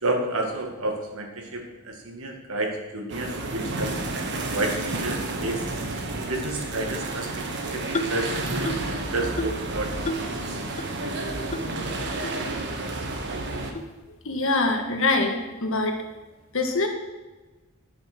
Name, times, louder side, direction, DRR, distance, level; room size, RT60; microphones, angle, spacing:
voice 1, 0.0-5.2 5.4-5.6 6.1-7.5 7.7-10.3, right 2 dB, 70° right, 3 dB, 2.1 m, -31 dB
sound 1, 3.1-13.7, right 2 dB, 50° right, 1.5 m, -31 dB
sound 2, 7.9-8.3 8.7-8.9 9.4-9.7 10.1-10.3 10.8-10.9 11.5-11.6 12.2-12.3 13.0-13.1 13.7-13.9, left 1 dB, 35° left, 0.7 m, -31 dB
voice 2, 14.2-16.0 16.5-16.9, left 2 dB, 60° left, 4 dB, 1.7 m, -24 dB
10.5 x 8.1 x 6.2 m, 1.2 s
head